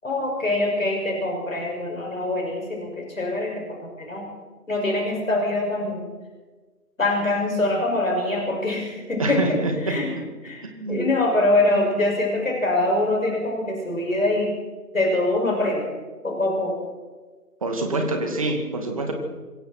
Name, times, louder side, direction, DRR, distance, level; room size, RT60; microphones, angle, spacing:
voice 1, 0.0-4.3 4.7-6.1 7.0-9.6 9.8-10.1 10.4-10.6 10.9-14.6 14.9-15.9 16.2-16.7, left 2 dB, 55° left, 0 dB, 6.7 m, -24 dB
voice 2, 9.2-10.0 10.6-11.0 17.6-19.1, right 2 dB, 20° right, 4 dB, 2.3 m, -26 dB
26.5 x 23.0 x 4.5 m, 1.3 s
figure-of-eight pair, 160°, 48 cm